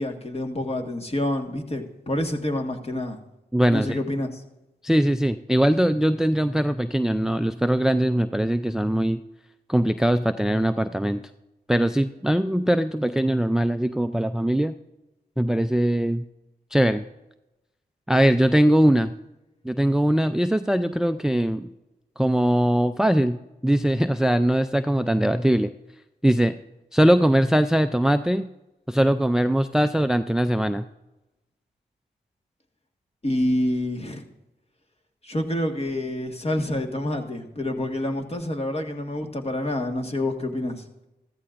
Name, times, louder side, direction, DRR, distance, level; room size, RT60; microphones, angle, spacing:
voice 1, 0.0-3.2 3.7-4.4 33.2-34.2 35.2-40.8, left 1 dB, 35° left, 3 dB, 1.7 m, -27 dB
voice 2, 3.5-4.0 4.8-9.2 9.7-11.2 11.7-14.7 15.4-16.2 16.7-17.0 18.1-19.1 19.6-21.7 22.2-23.4 23.6-25.7 26.2-26.5 26.9-28.5 28.9-30.8, right 1 dB, 5° right, 10 dB, 0.4 m, -21 dB
14.0 x 14.0 x 2.6 m, 0.97 s
supercardioid pair, 45°, 18 cm